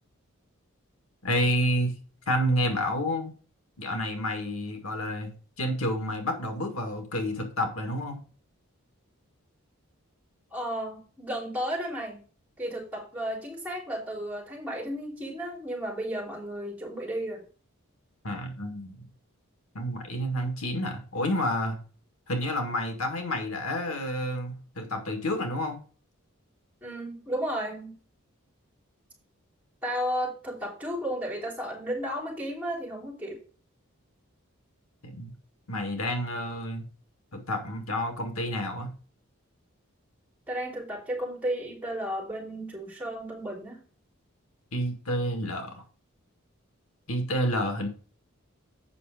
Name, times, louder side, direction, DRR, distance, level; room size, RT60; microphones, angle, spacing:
voice 1, 1.2-2.0 2.3-3.3 3.8-8.2 18.2-19.1 19.8-21.8 22.3-25.8 35.0-35.3 35.7-36.9 37.3-38.9 44.7-45.8 47.1-47.9, equal, 80° left, 4 dB, 1.7 m, -29 dB
voice 2, 10.5-12.2 12.6-17.4 26.8-27.9 29.8-33.4 40.5-43.8, equal, 5° right, -2 dB, 3.6 m, -33 dB
8.4 x 5.9 x 4.9 m, 0.39 s
head